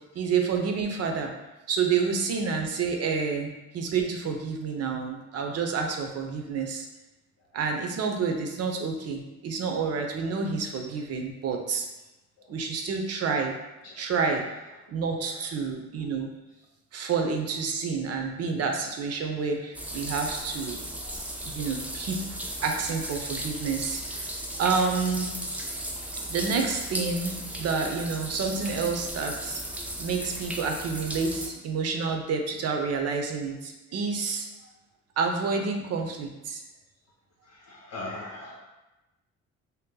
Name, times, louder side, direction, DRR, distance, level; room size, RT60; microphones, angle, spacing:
voice 1, 0.1-1.3 1.7-6.9 7.5-11.9 12.5-13.5 14.0-14.5 14.9-16.3 16.9-20.8 21.4-22.2 22.6-24.2 24.6-25.3 26.3-29.6 30.0-34.5 35.2-36.6, right 5 dB, 55° right, 4 dB, 0.5 m, -29 dB
sound 1, 19.7-31.5, right 1 dB, 5° right, 0.3 m, -36 dB
voice 2, 21.0-21.5 37.5-38.6, left 2 dB, 60° left, -3 dB, 0.7 m, -40 dB
2.7 x 2.1 x 3.7 m, 1.0 s
cardioid pair, 90°, 30 cm